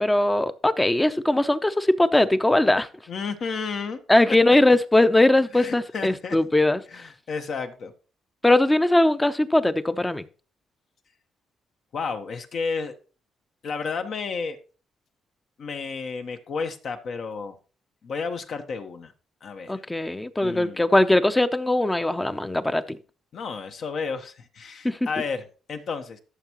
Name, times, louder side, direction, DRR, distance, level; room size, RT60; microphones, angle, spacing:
voice 1, 0.0-2.9 4.1-7.0 8.4-10.2 19.7-23.0 24.8-25.0, left 1 dB, 10° left, 0.7 m, -20 dB
voice 2, 3.1-4.0 5.5-6.4 6.9-7.9 11.9-12.9 13.6-14.6 15.6-17.6 18.0-19.1 19.4-19.8 20.4-20.8 23.3-26.2, left 5 dB, 60° left, 1.2 m, -32 dB
13.0 x 6.4 x 3.0 m
cardioid pair, 90°, 0 cm